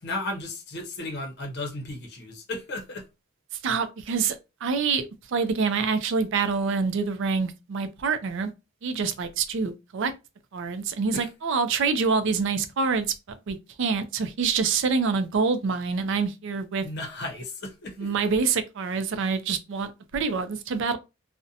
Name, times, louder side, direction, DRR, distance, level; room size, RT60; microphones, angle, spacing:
voice 1, 0.0-3.0 11.1-11.3 16.8-18.1, left 2 dB, 50° left, 0.6 m, -34 dB
voice 2, 3.6-4.4 4.6-8.5 8.8-10.1 10.5-13.1 13.5-16.9 18.0-21.0, right 5 dB, 60° right, 0.4 m, -26 dB
2.5 x 2.1 x 2.6 m
head